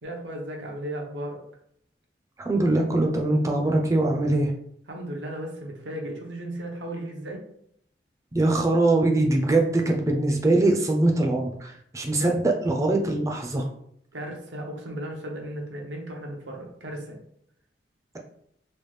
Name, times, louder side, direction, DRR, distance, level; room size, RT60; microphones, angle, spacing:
voice 1, 0.0-1.4 4.9-7.4 12.2-12.3 14.1-17.2, right 1 dB, 85° right, 1 dB, 0.8 m, -35 dB
voice 2, 2.4-4.5 8.3-13.7, right 2 dB, 15° right, 1 dB, 0.4 m, -22 dB
3.2 x 2.3 x 3.1 m, 0.71 s
head